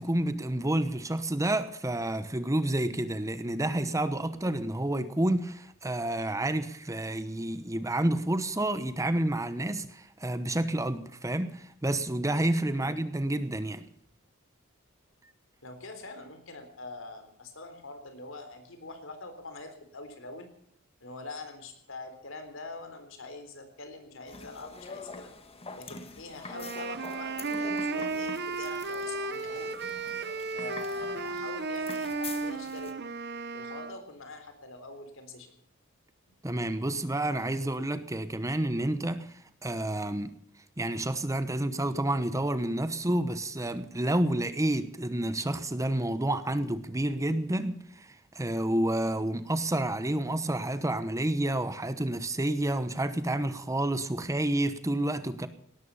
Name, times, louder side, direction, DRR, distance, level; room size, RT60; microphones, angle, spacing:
voice 1, 0.0-13.8 36.4-40.3 40.8-55.5, right 1 dB, 15° right, 0.9 m, -29 dB
voice 2, 15.6-20.5 21.0-25.3 25.8-29.7 30.5-32.9 33.5-35.5, left 2 dB, 70° left, 3.8 m, -44 dB
sound 1, 24.3-32.9, left 4 dB, 30° left, 1.7 m, -45 dB
sound 2, 26.5-34.0, right 3 dB, 55° right, 1.1 m, -34 dB
18.0 x 13.5 x 5.6 m
head